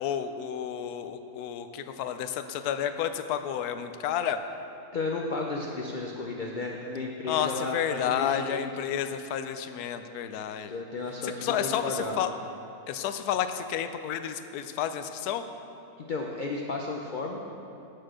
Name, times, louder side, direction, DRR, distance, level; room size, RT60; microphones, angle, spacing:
voice 1, 0.0-4.4 7.3-10.7 11.2-12.3 12.9-15.4, left 9 dB, 80° left, 9 dB, 1.1 m, -31 dB
voice 2, 4.9-8.7 10.7-12.2 16.1-17.4, left 3 dB, 50° left, 0 dB, 0.5 m, -33 dB
9.7 x 6.6 x 6.2 m, 2.9 s
omnidirectional pair, 1.6 m